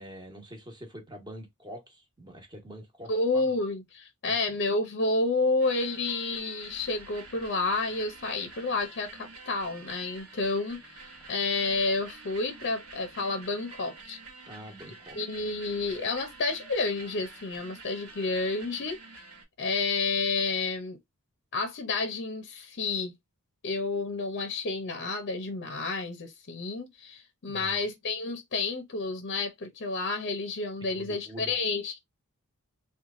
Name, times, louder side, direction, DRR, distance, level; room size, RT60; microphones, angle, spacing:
voice 1, 0.0-3.5 4.2-4.4 14.4-15.2 27.5-27.8 30.8-31.6, equal, 20° right, 1.2 m, -45 dB
voice 2, 3.1-14.2 15.2-19.0 19.6-21.0 21.5-23.1 23.6-32.0, left 3 dB, 50° left, 0.7 m, -30 dB
sound 1, 5.6-19.4, right 3 dB, 70° right, 1.3 m, -48 dB
3.0 x 2.3 x 3.6 m
head